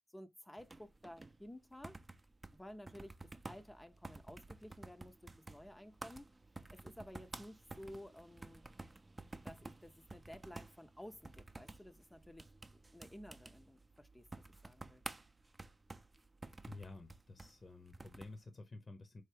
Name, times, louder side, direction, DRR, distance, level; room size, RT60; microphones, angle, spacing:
voice 1, 0.1-2.0 2.5-6.3 6.7-8.7 9.3-15.0, left 1 dB, 15° left, 0.6 m, -54 dB
sound 1, 0.6-18.4, right 2 dB, 30° right, 0.6 m, -53 dB
voice 2, 16.7-19.2, left 2 dB, 45° left, 0.8 m, -52 dB
3.8 x 3.3 x 3.3 m
supercardioid pair, 45°, 0 cm